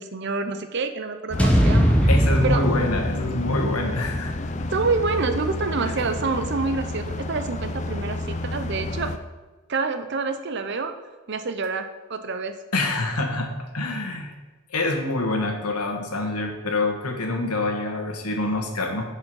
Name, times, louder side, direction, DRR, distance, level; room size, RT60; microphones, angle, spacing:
voice 1, 0.0-2.0 2.4-2.6 4.7-9.1 9.7-10.9 11.3-12.6, right 4 dB, 50° right, 8 dB, 0.6 m, -27 dB
sound 1, 1.3-9.2, left 2 dB, 30° left, 0.4 m, -31 dB
sound 2, 1.4-5.6, equal, 5° left, 0.8 m, -22 dB
voice 2, 2.1-4.6 5.8-5.9 12.7-14.3 14.7-19.0, left 2 dB, 90° left, 3 dB, 1.4 m, -26 dB
7.6 x 4.8 x 6.1 m, 1.2 s
head